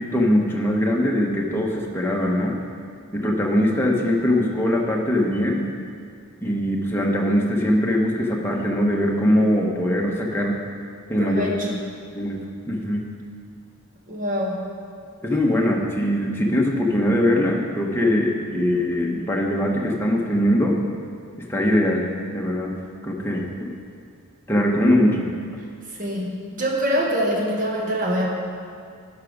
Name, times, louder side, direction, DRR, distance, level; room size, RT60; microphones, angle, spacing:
voice 1, 0.0-2.6 3.1-5.6 6.4-10.6 11.1-11.5 12.1-13.1 15.2-20.8 21.4-22.8 23.0-23.7 24.5-25.3, left 1 dB, 10° left, -2 dB, 1.0 m, -21 dB
voice 2, 11.2-11.8 14.1-14.6 26.0-28.3, equal, 35° right, -2 dB, 1.5 m, -24 dB
11.5 x 5.9 x 5.1 m, 2.2 s
head